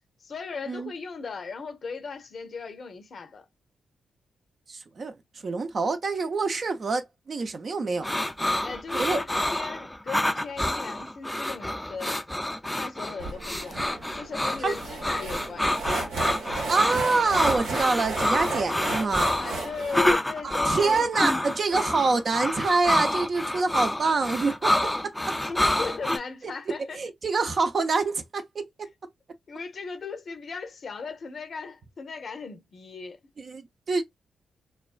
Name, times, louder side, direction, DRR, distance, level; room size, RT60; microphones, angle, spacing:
voice 1, 0.2-3.5 8.6-12.2 12.8-13.8 14.1-15.8 19.4-21.1 25.4-27.0 29.5-33.2, left 5 dB, 60° left, 0.6 m, -37 dB
voice 2, 4.7-5.2 5.4-8.3 8.9-9.2 14.6-14.7 16.7-19.3 20.4-24.8 25.0-25.1 26.4-28.6 33.4-34.0, right 4 dB, 55° right, 0.5 m, -26 dB
sound 1, 8.0-26.2, left 1 dB, 10° left, 0.4 m, -27 dB
sound 2, 13.2-20.1, right 3 dB, 85° right, 0.9 m, -34 dB
2.3 x 2.3 x 2.4 m
hypercardioid pair, 40°, 0 cm